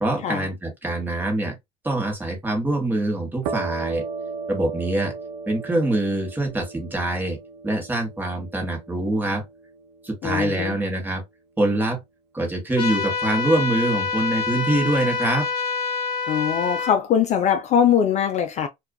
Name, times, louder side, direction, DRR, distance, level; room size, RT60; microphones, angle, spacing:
voice 1, 0.0-1.6 1.8-4.1 4.5-5.1 5.5-9.4 10.0-11.2 11.6-12.0 12.3-15.5, right 2 dB, 10° right, 1.1 m, -24 dB
sound 1, 3.4-10.9, right 4 dB, 65° right, 0.5 m, -36 dB
voice 2, 10.2-10.8 16.3-18.7, left 8 dB, 35° left, 0.4 m, -21 dB
sound 2, 12.8-17.0, left 4 dB, 85° left, 0.6 m, -26 dB
2.4 x 2.3 x 2.3 m
supercardioid pair, 110°, 19 cm